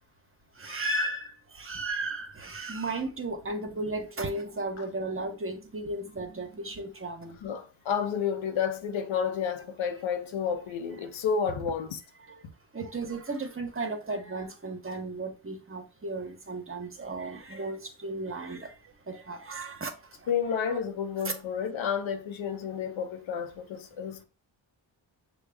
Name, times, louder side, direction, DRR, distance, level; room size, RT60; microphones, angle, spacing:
voice 1, 0.5-7.4 12.3-12.5 12.7-20.3 20.6-20.7 21.3-21.4 21.7-21.8, right 2 dB, 30° right, 0.9 m, -35 dB
voice 2, 7.4-12.0 20.3-24.2, left 7 dB, 85° left, 0.8 m, -31 dB
6.2 x 2.3 x 3.4 m
cardioid pair, 70°, 46 cm